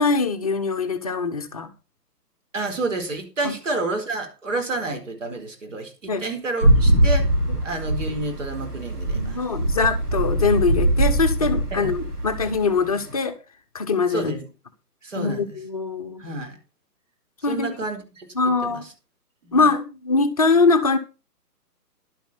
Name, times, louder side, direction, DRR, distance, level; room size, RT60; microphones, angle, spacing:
voice 1, 0.0-1.7 3.4-3.5 6.1-6.3 9.1-13.4 13.7-14.4 15.2-16.2 17.4-17.8 18.3-18.8 19.5-21.0, left 4 dB, 25° left, 0.9 m, -22 dB
voice 2, 2.5-7.3 7.6-9.4 11.7-11.9 14.1-14.4 15.0-15.4 16.2-16.6 17.4-18.3 18.6-18.8 19.4-19.6, right 2 dB, 50° right, 4.4 m, -29 dB
sound 1, 6.6-13.1, right 1 dB, 65° right, 4.5 m, -22 dB
12.0 x 12.0 x 4.3 m
figure-of-eight pair, 140°, 48 cm